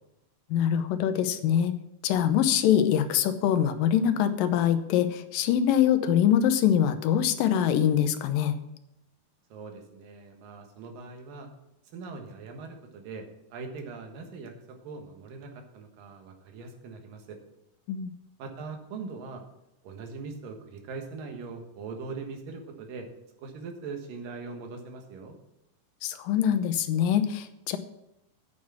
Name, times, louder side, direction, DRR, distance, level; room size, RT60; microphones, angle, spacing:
voice 1, 0.5-1.7 2.0-8.6 17.9-18.1 26.0-27.8, left 9 dB, 85° left, 10 dB, 2.5 m, -24 dB
voice 2, 9.5-11.5 11.9-14.5 14.8-17.4 18.4-19.4 19.8-23.1 23.4-25.4, right 4 dB, 90° right, 4 dB, 3.1 m, -41 dB
9.1 x 6.3 x 7.4 m, 0.88 s
omnidirectional pair, 3.8 m